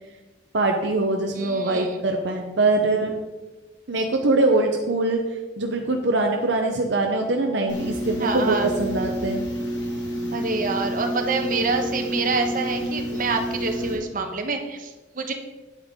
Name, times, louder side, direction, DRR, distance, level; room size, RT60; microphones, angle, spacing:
voice 1, 0.5-3.2 3.9-5.2 5.6-9.4, right 2 dB, 70° right, 2 dB, 0.8 m, -23 dB
voice 2, 1.3-2.0 8.2-8.7 10.3-15.3, right 3 dB, 50° right, 4 dB, 1.1 m, -27 dB
sound 1, 7.7-13.9, equal, 70° left, 2.0 m, -29 dB
9.0 x 8.7 x 3.7 m, 1.2 s
head